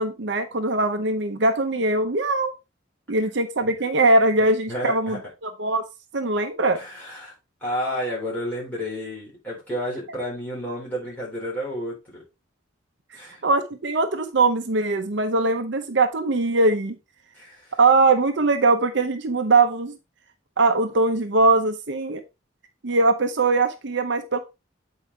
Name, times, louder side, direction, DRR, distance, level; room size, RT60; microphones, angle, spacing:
voice 1, 0.0-2.5 3.1-5.8 6.1-6.8 13.4-17.0 17.8-20.0 20.6-22.2 22.8-24.4, right 3 dB, 60° right, 0.7 m, -21 dB
voice 2, 4.7-5.2 6.7-7.3 7.6-12.2 13.1-13.4 17.3-17.7, equal, 10° left, 3.9 m, -31 dB
8.2 x 4.7 x 3.3 m
head